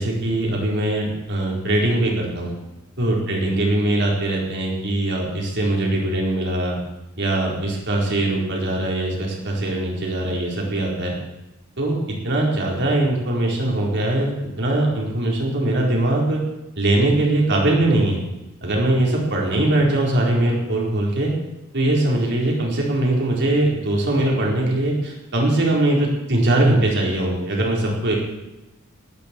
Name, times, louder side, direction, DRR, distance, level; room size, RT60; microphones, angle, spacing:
voice 1, 0.0-2.5 3.0-6.8 7.2-11.1 11.8-14.3 14.6-16.4 16.8-18.2 18.6-21.3 21.7-28.1, right 1 dB, 55° right, -2 dB, 4.3 m, -21 dB
18.0 x 13.5 x 4.6 m, 0.97 s
head